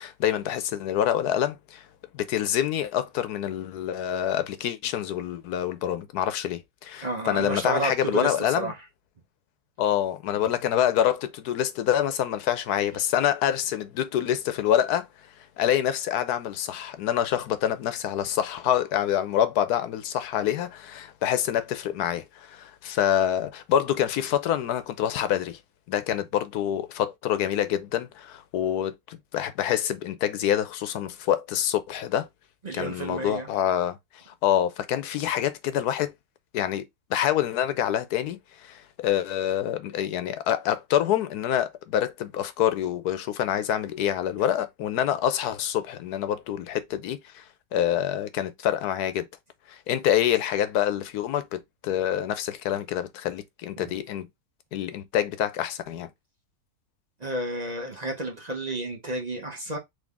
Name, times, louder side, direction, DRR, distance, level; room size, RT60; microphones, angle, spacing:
voice 1, 0.0-1.8 2.1-8.7 9.8-15.1 15.6-25.6 25.9-32.3 32.7-34.0 34.3-36.1 36.5-47.4 47.7-49.3 49.7-54.3 54.7-56.1, left 10 dB, 90° left, 1.2 m, -26 dB
voice 2, 7.0-8.8 32.6-33.5 53.8-53.9 57.2-59.8, right 2 dB, 35° right, 0.8 m, -31 dB
4.0 x 3.1 x 3.4 m
omnidirectional pair, 1.6 m